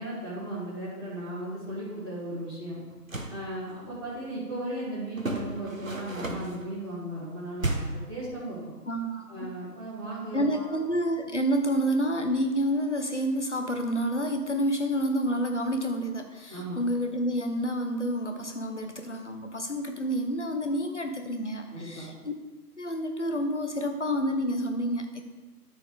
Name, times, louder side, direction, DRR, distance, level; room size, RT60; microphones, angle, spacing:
voice 1, 0.0-2.8 3.3-8.8 9.3-10.7 16.5-16.8 21.7-22.1, right 1 dB, 15° right, -15 dB, 2.0 m, -36 dB
sound 1, 2.9-3.4 5.2-6.6 7.6-8.1, right 2 dB, 55° right, 1.3 m, -33 dB
voice 2, 8.9-9.5 10.3-22.3 22.8-25.2, equal, 45° left, 4 dB, 1.2 m, -29 dB
13.0 x 4.6 x 5.0 m, 1.2 s
figure-of-eight pair, 165°, 48 cm